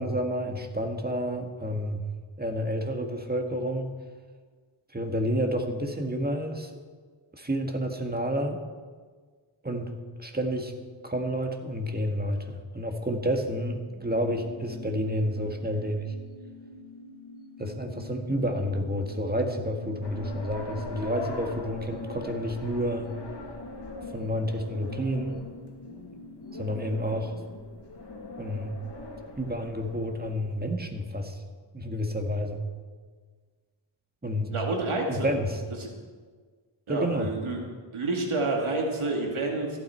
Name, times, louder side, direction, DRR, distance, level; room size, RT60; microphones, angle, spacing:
voice 1, 0.0-2.0 2.4-3.9 4.9-6.7 7.3-8.6 9.6-9.9 10.2-10.7 11.0-16.1 17.6-23.1 24.1-25.5 26.5-27.3 28.4-28.7 29.4-31.4 31.7-32.6 34.2-34.5 35.1-35.6 36.9-37.3, equal, 20° right, 4 dB, 1.7 m, -30 dB
sound 1, 13.6-28.7 29.0-29.1, left 2 dB, 25° left, 2.7 m, -48 dB
sound 2, 20.0-30.7, left 3 dB, 55° left, 2.0 m, -41 dB
voice 2, 34.5-35.3 36.9-37.6 37.9-39.8, right 2 dB, 90° right, 0 dB, 2.1 m, -28 dB
14.5 x 12.0 x 4.5 m, 1.5 s
wide cardioid pair, 55°, 48 cm